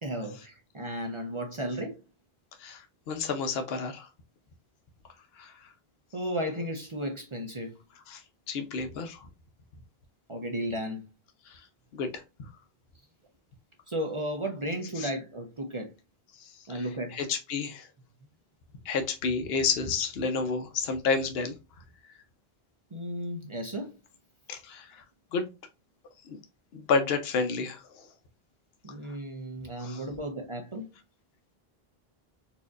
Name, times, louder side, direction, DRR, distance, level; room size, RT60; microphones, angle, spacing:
voice 1, 0.0-2.0 6.1-7.7 10.3-11.0 13.9-15.9 16.7-17.2 22.9-23.9 28.8-30.9, equal, 35° right, 0.6 m, -34 dB
voice 2, 2.6-4.1 5.4-5.5 8.1-8.2 8.5-9.3 11.5-11.6 11.9-12.5 15.0-15.1 16.4-17.9 18.9-21.5 24.5-25.0 25.3-25.5 26.3-26.4 26.7-28.0 29.8-30.0, left 5 dB, 75° left, 0.9 m, -31 dB
4.3 x 2.7 x 2.3 m
omnidirectional pair, 1.0 m